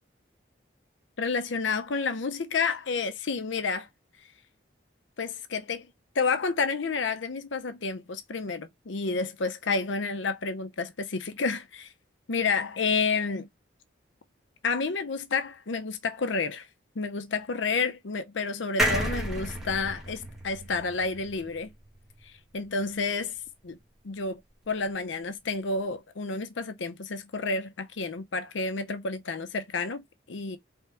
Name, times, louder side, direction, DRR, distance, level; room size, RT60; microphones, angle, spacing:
voice 1, 1.2-3.9 5.2-5.9 6.1-11.9 12.3-13.5 14.6-16.7 17.0-21.7 22.2-23.4 23.6-23.8 24.0-24.4 24.7-30.6, left 4 dB, 80° left, 0.6 m, -30 dB
sound 1, 18.8-22.3 22.7-22.8 23.0-23.1, right 1 dB, ahead, 1.5 m, -31 dB
4.3 x 3.5 x 3.5 m
head